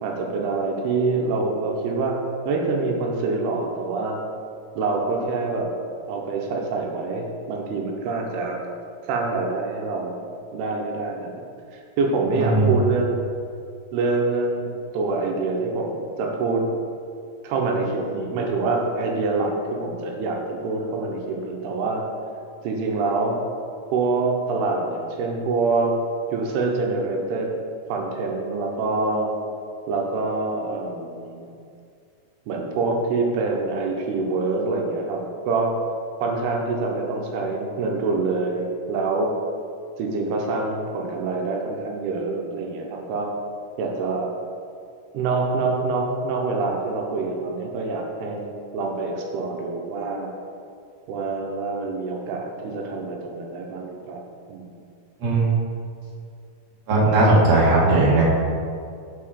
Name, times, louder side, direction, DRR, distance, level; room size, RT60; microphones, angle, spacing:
voice 1, 0.0-2.2 2.4-4.2 4.8-5.7 6.1-8.6 9.1-10.2 10.5-11.3 11.7-13.2 13.9-16.7 17.4-22.0 22.6-23.4 23.9-26.0 26.3-27.5 27.9-29.3 29.9-31.5 32.5-35.7 36.2-39.3 40.0-43.3 43.8-44.3 45.1-48.5 48.7-50.3 51.1-54.2 54.5-54.7, right 3 dB, 90° right, 1 dB, 2.9 m, -25 dB
voice 2, 12.3-12.8 55.2-55.5 56.9-58.2, right 2 dB, 50° right, -6 dB, 2.4 m, -18 dB
7.7 x 5.7 x 5.0 m, 2.4 s
omnidirectional pair, 4.5 m